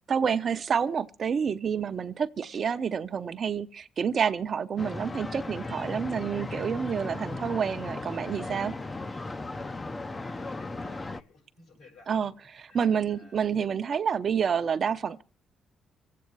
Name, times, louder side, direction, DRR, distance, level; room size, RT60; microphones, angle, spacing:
voice 1, 0.1-8.7 12.1-15.2, right 7 dB, 50° right, 0.6 m, -28 dB
sound 1, 4.8-11.2, left 2 dB, 25° left, 0.6 m, -36 dB
voice 2, 6.7-7.4 10.2-12.3 12.7-13.4, left 4 dB, 75° left, 6.4 m, -56 dB
25.0 x 8.5 x 4.6 m
cardioid pair, 90°, 0 cm